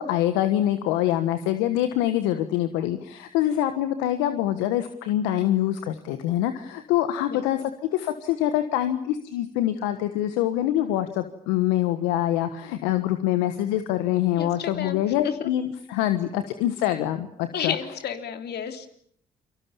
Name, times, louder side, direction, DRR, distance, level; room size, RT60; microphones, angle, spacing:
voice 1, 0.0-17.8, left 12 dB, 80° left, 9 dB, 1.4 m, -25 dB
voice 2, 14.4-15.5 17.5-18.9, left 8 dB, 65° left, 6 dB, 3.4 m, -31 dB
29.5 x 24.0 x 7.1 m, 0.65 s
hypercardioid pair, 45°, 18 cm